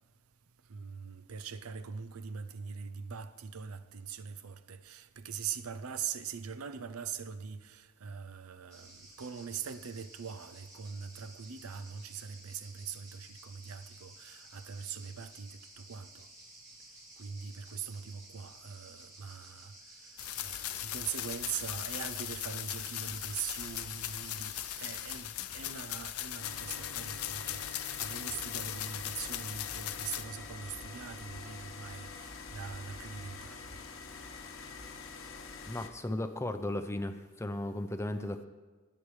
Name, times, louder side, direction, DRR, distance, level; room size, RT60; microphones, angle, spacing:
voice 1, 0.7-16.3 17.2-19.7 20.4-33.8, right 7 dB, 85° right, 0.6 m, -42 dB
sound 1, 8.7-25.2, right 1 dB, 15° right, 2.1 m, -54 dB
sound 2, 20.2-30.2, left 12 dB, 90° left, 0.6 m, -39 dB
sound 3, 26.4-35.9, left 4 dB, 75° left, 1.1 m, -46 dB
voice 2, 35.7-38.4, left 1 dB, 10° left, 0.5 m, -35 dB
19.5 x 8.4 x 3.2 m
head